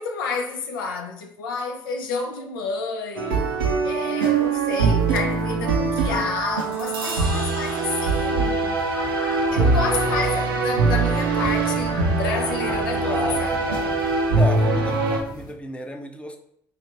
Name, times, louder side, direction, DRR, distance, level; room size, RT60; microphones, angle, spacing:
voice 1, 0.0-3.4 3.8-8.8 9.5-13.6, left 4 dB, 80° left, 0.5 m, -30 dB
sound 1, 3.2-15.2, right 4 dB, 85° right, 0.5 m, -22 dB
sound 2, 4.3-15.5, left 1 dB, 35° left, 0.9 m, -39 dB
voice 2, 13.0-13.9 14.3-16.4, equal, 10° left, 0.6 m, -33 dB
3.3 x 2.5 x 4.0 m
hypercardioid pair, 55°, 11 cm